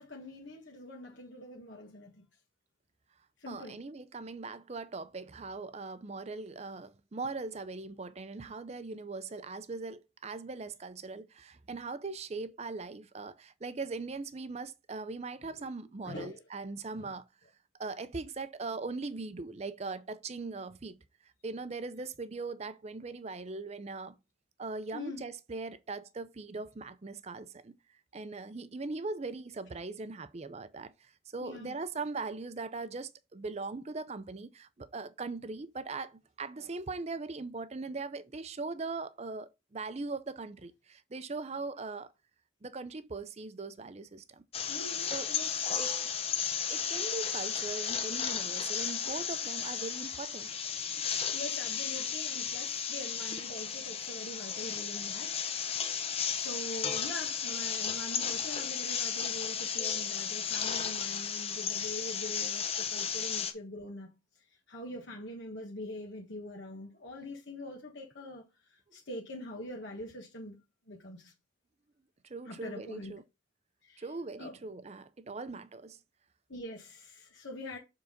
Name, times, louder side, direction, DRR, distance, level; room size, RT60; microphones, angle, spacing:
voice 1, 0.0-2.2 3.4-3.8 15.6-15.7 16.0-16.4 17.0-17.1 24.9-25.2 31.4-31.8 44.7-45.5 51.3-55.4 55.7-64.1 64.7-70.6 70.9-71.3 72.5-73.1 73.8-74.1 74.4-74.6 76.5-77.8, left 1 dB, 65° left, 1.5 m, -44 dB
voice 2, 3.5-17.3 17.8-21.0 21.2-24.1 24.6-27.8 28.1-42.1 42.6-44.4 45.1-45.3 45.8-45.9 46.7-50.5 72.2-73.2 74.0-76.0, right 3 dB, 30° right, 0.5 m, -40 dB
sound 1, 44.5-63.5, left 7 dB, 30° left, 0.8 m, -34 dB
7.0 x 3.9 x 5.1 m
head